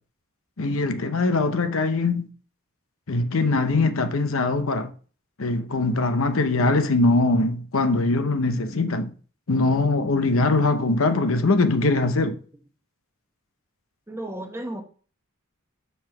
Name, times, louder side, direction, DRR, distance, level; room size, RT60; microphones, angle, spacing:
voice 1, 0.6-2.3 3.1-4.9 5.4-9.1 9.5-12.4, left 3 dB, 70° left, 0.7 m, -22 dB
voice 2, 14.1-14.8, right 1 dB, 10° right, 1.0 m, -33 dB
5.6 x 4.7 x 5.8 m
head